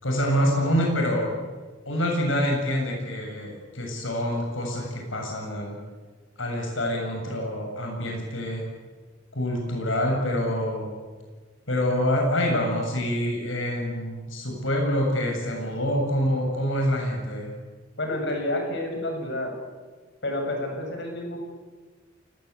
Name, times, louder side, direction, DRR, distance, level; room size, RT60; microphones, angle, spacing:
voice 1, 0.0-1.3 1.8-5.8 6.4-8.6 9.3-10.9 11.7-17.5, equal, 85° left, 1 dB, 7.6 m, -26 dB
voice 2, 18.0-19.5 20.2-21.4, left 1 dB, 65° left, 3 dB, 6.6 m, -29 dB
28.5 x 19.5 x 8.3 m, 1.4 s
head